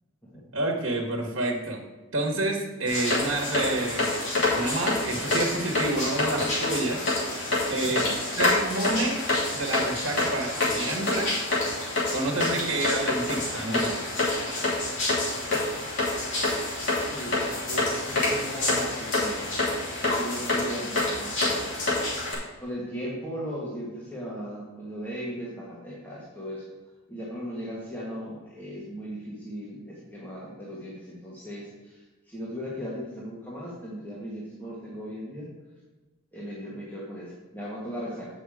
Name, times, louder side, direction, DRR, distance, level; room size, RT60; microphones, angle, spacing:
voice 1, 0.5-1.8 2.1-4.1 4.5-7.1 7.4-8.1 8.4-9.2 9.5-11.3 12.1-14.1, right 2 dB, 65° right, 1 dB, 1.4 m, -29 dB
sound 1, 2.9-22.3, left 2 dB, 60° left, 2.9 m, -27 dB
voice 2, 7.8-8.3 17.1-19.4 20.0-21.7 22.6-26.6 27.1-35.5 36.3-38.3, equal, 10° left, -7 dB, 1.4 m, -37 dB
8.0 x 5.8 x 4.9 m, 1.2 s
head